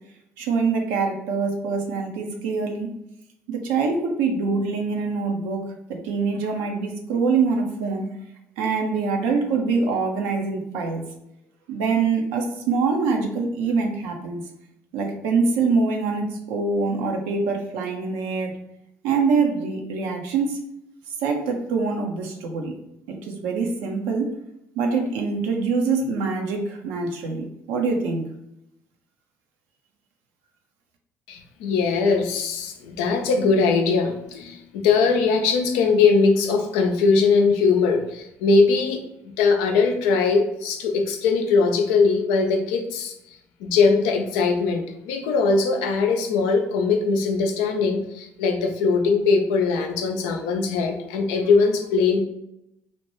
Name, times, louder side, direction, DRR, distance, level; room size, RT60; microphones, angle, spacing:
voice 1, 0.4-2.9 3.5-5.6 5.9-8.1 8.6-11.0 11.7-14.4 14.9-18.5 19.0-20.6 21.2-22.7 23.2-24.3 24.8-28.2, right 4 dB, 75° right, 2 dB, 0.5 m, -24 dB
voice 2, 31.3-39.0 39.4-52.2, left 4 dB, 75° left, 4 dB, 0.4 m, -21 dB
2.8 x 2.1 x 3.0 m, 0.83 s
hypercardioid pair, 50°, 7 cm